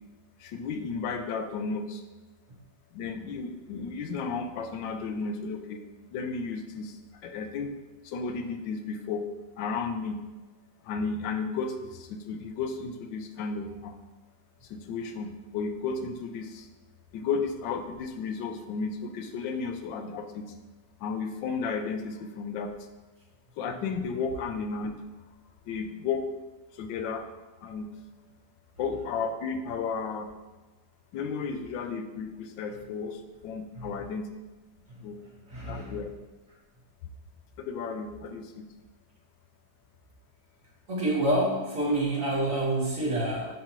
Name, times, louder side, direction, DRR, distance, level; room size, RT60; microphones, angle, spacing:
voice 1, 0.4-2.0 2.9-5.8 6.1-7.0 7.2-7.7 8.0-9.2 9.6-10.2 10.8-14.0 14.7-16.7 17.1-20.5 21.0-22.7 23.6-25.0 25.7-26.3 26.8-27.3 27.6-27.9 28.8-30.3 31.1-33.2 33.4-34.3 35.0-35.2 35.7-36.1 37.6-38.6, left 5 dB, 80° left, 6 dB, 1.3 m, -33 dB
voice 2, 35.5-36.0 40.9-43.5, right 1 dB, 45° right, -4 dB, 1.9 m, -28 dB
10.0 x 3.7 x 3.1 m, 1.2 s
omnidirectional pair, 2.0 m